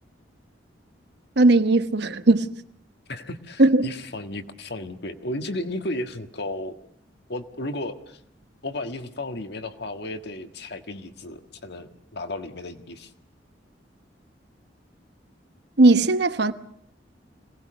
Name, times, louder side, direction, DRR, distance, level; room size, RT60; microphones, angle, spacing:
voice 1, 1.4-2.6 3.6-3.9 15.8-16.5, right 2 dB, 60° right, 1.1 m, -18 dB
voice 2, 3.1-6.8 7.3-8.2 8.6-13.1, left 1 dB, 60° left, 1.7 m, -34 dB
26.0 x 19.0 x 6.4 m
head